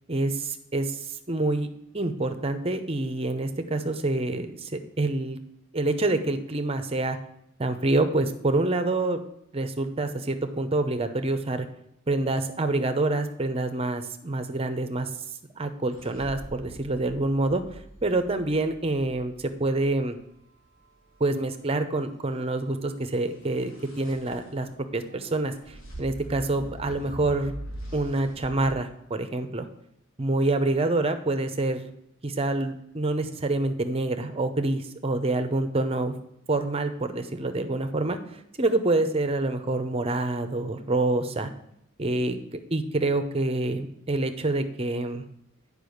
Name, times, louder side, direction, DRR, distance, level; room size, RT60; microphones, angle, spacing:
voice 1, 0.1-1.7 1.9-5.4 5.7-7.2 7.6-9.2 9.5-11.7 12.1-15.1 15.6-20.2 21.2-27.5 27.9-29.7 30.2-31.9 32.2-36.2 36.5-41.5 42.0-42.4 42.7-45.2, right 2 dB, 25° right, 8 dB, 0.7 m, -27 dB
sound 1, 15.9-20.0 23.3-28.6, right 1 dB, 65° left, 2.1 m, -43 dB
8.8 x 5.1 x 6.4 m, 0.78 s
head